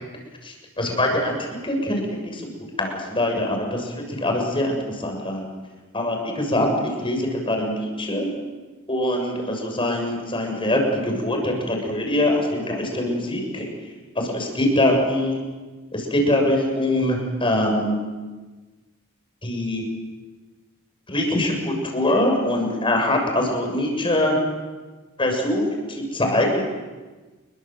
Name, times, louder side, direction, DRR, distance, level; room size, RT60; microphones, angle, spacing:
voice 1, 0.4-2.0 2.3-2.5 2.8-5.5 5.9-8.3 8.9-13.7 14.2-15.4 15.9-18.0 19.4-19.8 21.1-24.3 25.2-26.6, left 1 dB, 25° left, 2 dB, 7.2 m, -23 dB
28.5 x 23.5 x 7.8 m, 1.3 s
head